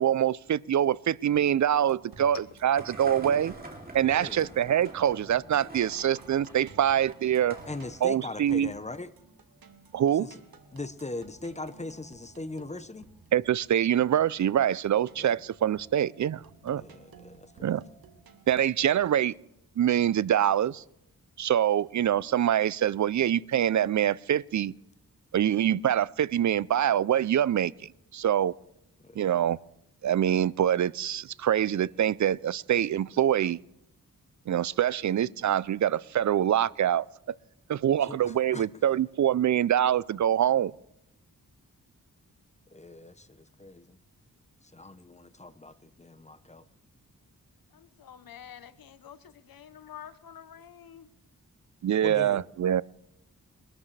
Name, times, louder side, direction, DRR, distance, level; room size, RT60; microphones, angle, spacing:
voice 1, 0.0-3.5 3.9-7.5 8.0-8.7 9.9-10.3 13.3-16.8 17.6-17.8 18.5-19.3 19.8-20.8 21.4-24.7 25.3-28.5 29.2-29.6 30.0-33.6 34.5-37.1 37.7-40.7 51.8-52.8, right 10 dB, 55° right, 0.4 m, -25 dB
sound 1, 1.8-18.5, right 5 dB, 85° right, 1.5 m, -55 dB
sound 2, 2.7-8.1, right 2 dB, 25° right, 2.8 m, -46 dB
voice 2, 4.1-4.5 7.7-9.1 10.2-10.4 10.7-13.1 15.2-15.4 16.7-17.8 29.0-29.2 38.0-38.7 42.7-44.0 44.7-46.6 52.0-52.4, left 2 dB, 20° left, 0.8 m, -40 dB
voice 3, 47.7-51.1, left 9 dB, 85° left, 0.9 m, -48 dB
23.0 x 13.0 x 3.3 m
wide cardioid pair, 75°, 34 cm